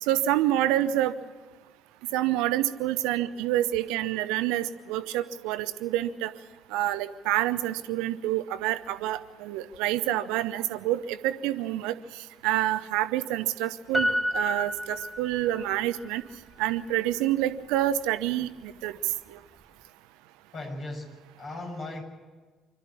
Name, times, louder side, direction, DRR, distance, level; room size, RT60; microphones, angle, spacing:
voice 1, 0.0-1.1 2.1-6.3 6.7-12.0 12.4-16.2 16.6-18.9 19.3-19.4, right 13 dB, 70° right, 13 dB, 0.9 m, -27 dB
Piano, 13.9-15.7 16.0-16.1, equal, 5° right, 3.2 m, -29 dB
voice 2, 20.5-21.1 21.4-22.0, left 2 dB, 45° left, 1 dB, 6.8 m, -37 dB
25.5 x 13.0 x 8.6 m, 1.4 s
figure-of-eight pair, 50°, 0 cm